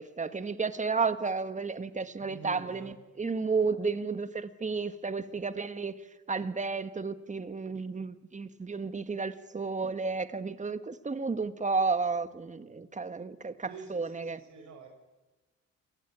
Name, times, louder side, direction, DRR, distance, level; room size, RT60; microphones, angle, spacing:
voice 1, 0.0-6.0 6.3-14.4, right 4 dB, 25° right, 1.7 m, -32 dB
voice 2, 2.2-2.9 13.6-14.9, right 4 dB, 70° right, 5.3 m, -47 dB
27.0 x 18.5 x 8.8 m
cardioid pair, 90°, 30 cm